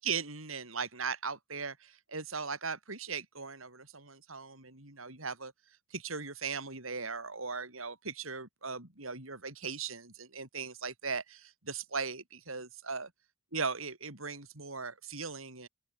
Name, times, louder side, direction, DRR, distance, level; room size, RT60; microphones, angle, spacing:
voice 1, 0.0-5.5 5.9-13.1 13.5-15.7, right 5 dB, 80° right, 6.6 m, -38 dB
open air
head